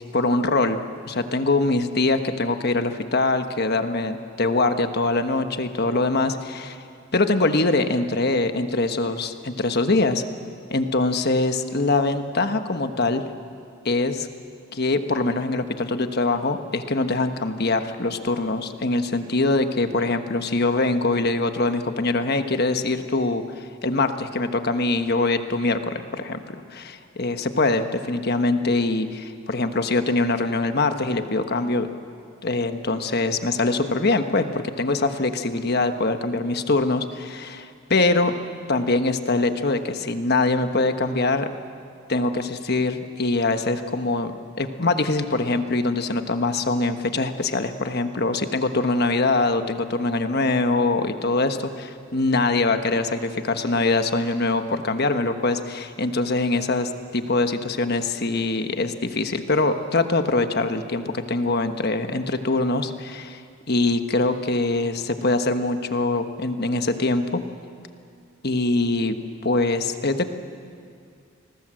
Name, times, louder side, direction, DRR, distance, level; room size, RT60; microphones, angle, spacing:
voice 1, 0.1-6.8 7.1-10.2 10.7-13.2 13.8-14.3 14.7-26.4 26.7-31.9 32.4-38.3 38.7-41.5 42.1-44.3 44.6-63.4 63.7-67.4 68.4-69.2 69.4-70.3, left 2 dB, 50° left, 7 dB, 1.3 m, -23 dB
27.5 x 20.5 x 7.8 m, 2.3 s
head